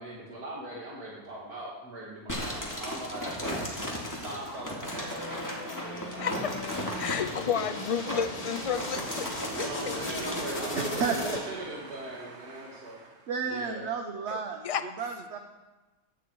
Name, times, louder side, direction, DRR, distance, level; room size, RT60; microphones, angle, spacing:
voice 1, 0.0-3.6 3.9-6.3 7.0-7.2 8.1-8.2 9.5-13.0 13.5-13.8, right 1 dB, 75° right, -4 dB, 2.7 m, -40 dB
sound 1, 2.3-11.1, equal, 10° left, 2.8 m, -36 dB
sound 2, 4.9-11.8, left 1 dB, 75° left, 3.0 m, -38 dB
voice 2, 6.2-6.5 7.0-9.0 9.8-9.9 14.3-14.9, left 7 dB, 55° left, 11 dB, 0.3 m, -31 dB
voice 3, 10.6-14.6 15.0-15.4, right 5 dB, 50° right, 4 dB, 1.2 m, -34 dB
17.5 x 12.5 x 4.7 m, 1.2 s
omnidirectional pair, 1.6 m